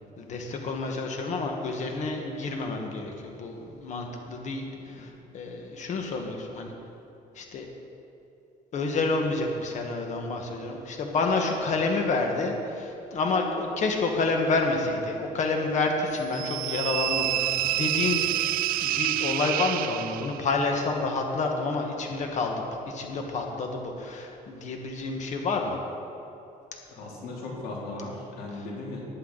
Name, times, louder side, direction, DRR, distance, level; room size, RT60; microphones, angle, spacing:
voice 1, 0.2-6.7 7.4-7.7 8.7-18.3 18.8-25.8, left 3 dB, 50° left, 2 dB, 1.6 m, -29 dB
voice 2, 4.7-5.1 26.9-29.0, left 2 dB, 85° left, -3 dB, 3.3 m, -37 dB
sound 1, 16.3-20.5, right 14 dB, 70° right, 0.4 m, -28 dB
19.5 x 8.3 x 4.1 m, 2.8 s
cardioid pair, 125°, 15 cm